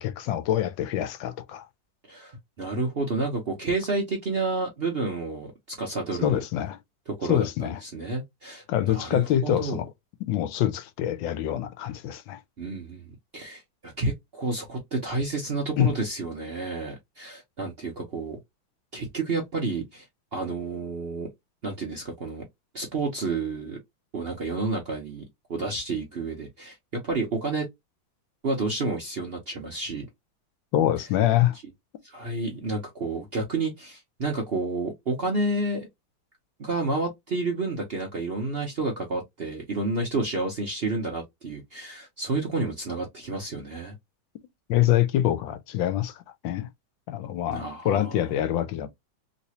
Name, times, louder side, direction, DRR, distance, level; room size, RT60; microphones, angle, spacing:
voice 1, 0.0-1.6 6.2-6.8 7.3-7.8 8.7-9.9 10.2-12.4 15.8-15.9 30.7-31.6 44.7-46.1 46.4-46.7 47.1-48.9, left 12 dB, 85° left, 1.4 m, -25 dB
voice 2, 2.1-6.4 7.1-9.8 12.6-13.1 13.3-18.4 18.9-20.1 20.3-21.3 21.6-22.4 22.7-23.8 24.1-25.2 25.5-26.8 27.0-27.7 28.4-30.1 32.0-35.9 36.6-43.9 47.5-48.2, right 3 dB, 50° right, 0.7 m, -30 dB
3.2 x 3.0 x 2.8 m
omnidirectional pair, 2.1 m